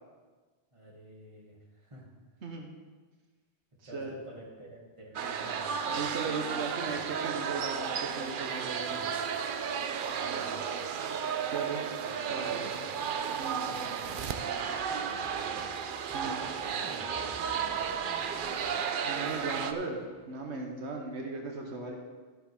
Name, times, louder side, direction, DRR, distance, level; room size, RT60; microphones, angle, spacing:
voice 1, 0.7-2.1 3.8-6.1 6.8-7.0 8.8-9.2 10.1-11.0 12.0-13.1 13.6-15.7 16.6-18.2, equal, 30° right, -4 dB, 2.0 m, -51 dB
voice 2, 2.4-2.7 3.9-4.1 5.9-9.1 11.4-11.8 12.3-12.7 13.4-13.7 16.1-16.4 19.1-20.0 20.3-21.9, right 4 dB, 85° right, 1 dB, 1.4 m, -37 dB
sound 1, 5.1-19.7, right 7 dB, 60° right, 0.7 m, -33 dB
sound 2, 14.1-20.4, right 1 dB, 5° right, 0.7 m, -53 dB
12.5 x 7.6 x 3.5 m, 1.4 s
omnidirectional pair, 1.1 m